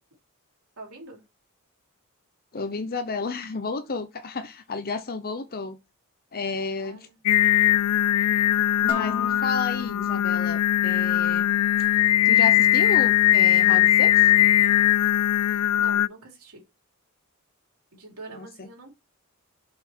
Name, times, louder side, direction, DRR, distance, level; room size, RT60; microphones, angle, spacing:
voice 1, 0.8-1.2 6.8-7.2 15.7-16.6 17.9-18.9, right 2 dB, 85° right, 3.1 m, -44 dB
voice 2, 2.5-5.8 6.3-7.1 8.8-11.5 12.2-14.3 18.3-18.7, left 4 dB, 45° left, 0.8 m, -32 dB
Singing, 7.3-16.1, left 13 dB, 85° left, 0.3 m, -20 dB
Dishes pots and pans, 8.9-10.9, left 4 dB, 25° left, 1.6 m, -39 dB
7.2 x 5.3 x 4.5 m
head